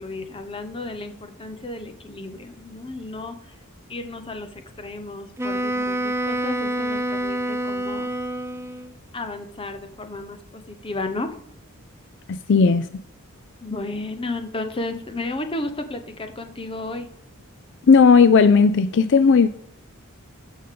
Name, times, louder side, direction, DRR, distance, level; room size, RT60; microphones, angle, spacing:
voice 1, 0.0-3.5 3.9-8.1 9.1-11.4 13.6-17.1, left 2 dB, 25° left, 7 dB, 1.0 m, -33 dB
Wind instrument woodwind instrument, 5.4-8.9, right 1 dB, 10° right, 0.4 m, -27 dB
voice 2, 12.3-12.9 17.9-19.5, left 5 dB, 55° left, 12 dB, 0.4 m, -15 dB
14.0 x 5.4 x 3.8 m, 0.70 s
head